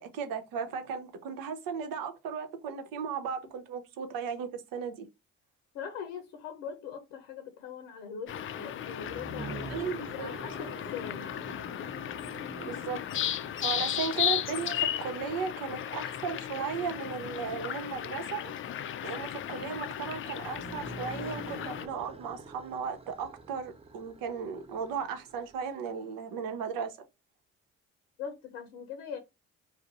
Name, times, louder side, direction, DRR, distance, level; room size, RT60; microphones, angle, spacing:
voice 1, 0.0-5.1 9.7-10.3 12.6-13.0 13.6-18.5 19.0-27.0, right 6 dB, 70° right, 0.7 m, -36 dB
voice 2, 5.7-9.7 10.1-11.3 28.2-29.2, left 7 dB, 85° left, 0.7 m, -41 dB
sound 1, 8.3-21.9, left 10 dB, 35° left, 0.4 m, -35 dB
sound 2, 9.0-14.2 20.4-26.1, right 3 dB, 15° right, 0.6 m, -47 dB
2.5 x 2.0 x 3.9 m
supercardioid pair, 60°, 35 cm